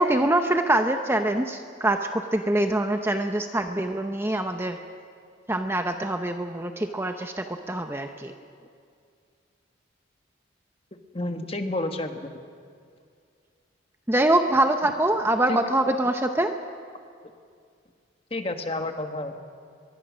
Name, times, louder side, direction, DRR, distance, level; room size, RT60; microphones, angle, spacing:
voice 1, 0.0-4.8 5.5-8.3 14.1-16.5, right 1 dB, 10° right, 6 dB, 0.7 m, -24 dB
voice 2, 11.1-12.3 15.5-15.6 18.3-19.5, left 2 dB, 30° left, 5 dB, 1.4 m, -30 dB
22.5 x 22.5 x 6.3 m, 2.2 s
head